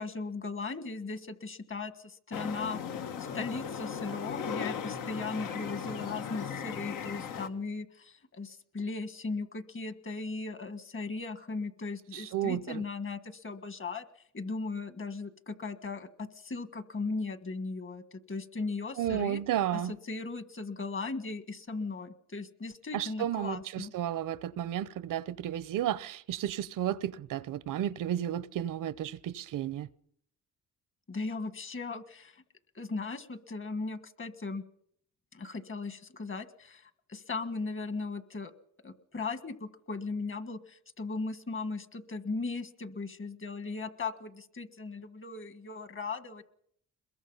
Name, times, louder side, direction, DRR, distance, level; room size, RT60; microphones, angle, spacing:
voice 1, 0.0-14.0 14.3-19.4 19.7-23.9 31.1-32.4 32.7-34.6 35.3-38.5 38.8-46.4, left 3 dB, 40° left, 1.6 m, -37 dB
sound 1, 2.3-7.5, left 7 dB, 80° left, 1.4 m, -37 dB
voice 2, 12.1-12.8 19.0-19.9 22.9-29.9, right 11 dB, 80° right, 0.8 m, -33 dB
22.5 x 21.5 x 5.6 m
cardioid pair, 100°, 32 cm